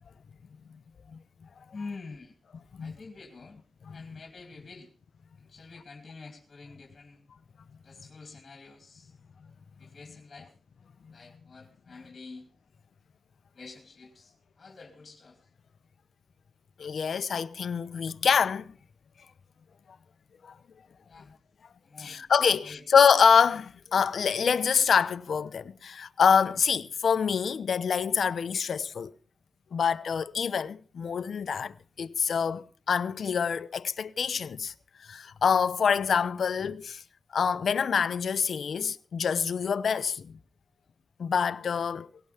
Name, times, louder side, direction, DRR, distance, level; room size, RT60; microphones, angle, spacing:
voice 1, 1.7-2.3 2.8-3.6 3.9-4.9 5.4-7.2 7.8-9.1 9.8-10.5 11.1-12.5 13.5-15.4 21.1-21.3 21.8-22.8, left 3 dB, 45° left, 2.8 m, -47 dB
voice 2, 3.9-4.2 16.8-18.7 20.4-20.5 22.0-29.1 29.7-34.7 35.0-37.0 37.3-40.3 41.2-42.1, left 6 dB, 70° left, 0.7 m, -26 dB
18.0 x 17.5 x 3.5 m
cardioid pair, 90°, 0 cm